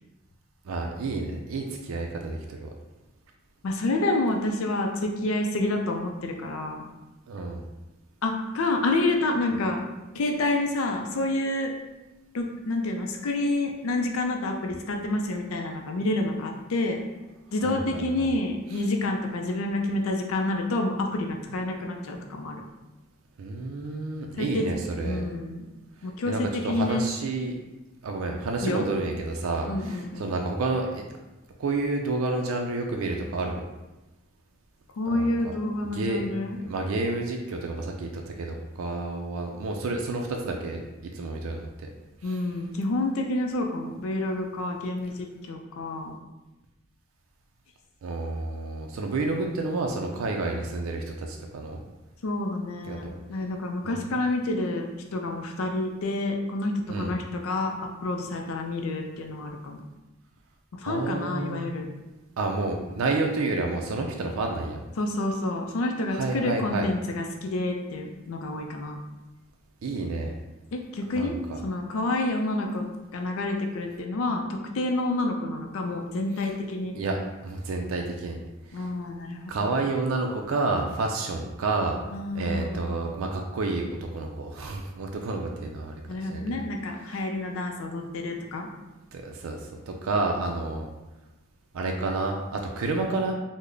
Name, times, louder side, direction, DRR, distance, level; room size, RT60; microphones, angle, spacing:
voice 1, 0.7-2.7 7.3-7.6 17.6-18.3 23.4-25.2 26.2-27.6 28.0-31.0 31.6-33.6 35.1-35.3 35.9-36.2 36.6-40.8 41.1-41.9 42.2-42.4 48.0-51.8 52.8-53.1 53.8-54.0 56.9-57.1 60.9-61.7 62.4-64.8 66.1-66.9 69.8-70.4 71.1-71.6 76.9-77.2 77.4-78.4 78.7-78.9 79.5-82.0 82.3-85.9 86.2-86.6 87.0-87.2 89.1-89.6 89.9-90.9 91.7-93.3, right 3 dB, 85° right, 2 dB, 0.4 m, -30 dB
voice 2, 3.6-6.9 8.2-9.8 10.1-11.7 12.3-17.0 17.5-22.6 24.4-24.7 25.0-25.7 26.0-27.1 28.6-28.8 29.7-30.3 35.0-36.6 42.2-46.2 52.2-57.7 58.0-59.8 60.8-61.9 65.0-69.0 70.7-71.4 71.6-72.8 73.1-77.0 78.7-79.7 82.1-83.1 86.1-88.7, left 2 dB, 85° left, 3 dB, 0.4 m, -28 dB
3.7 x 2.1 x 3.3 m, 1.1 s
head